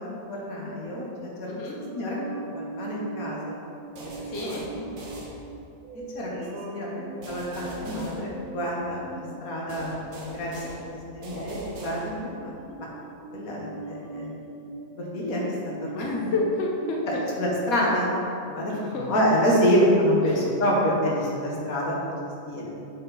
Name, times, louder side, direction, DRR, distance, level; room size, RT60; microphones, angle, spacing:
voice 1, 0.0-1.3 1.9-2.2 2.5-3.6 4.0-4.1 4.4-4.6 6.1-6.3 6.7-10.6 11.1-12.5 13.3-14.3 15.1-15.4 15.9-16.3 17.4-18.1 18.5-22.1 22.5-22.7, equal, 80° left, -4 dB, 1.7 m, -27 dB
voice 2, 1.5-1.8 4.3-4.6 15.9-17.2 18.8-19.1 20.2-20.4, left 2 dB, 55° left, -2 dB, 1.0 m, -30 dB
sound 1, 1.8-11.1 11.9-12.2 12.6-18.2, right 3 dB, 90° right, 1.2 m, -40 dB
sound 2, 4.0-5.9 7.2-9.0 9.7-12.5, right 2 dB, 70° right, 1.4 m, -41 dB
7.4 x 4.4 x 4.0 m, 2.6 s
omnidirectional pair, 1.5 m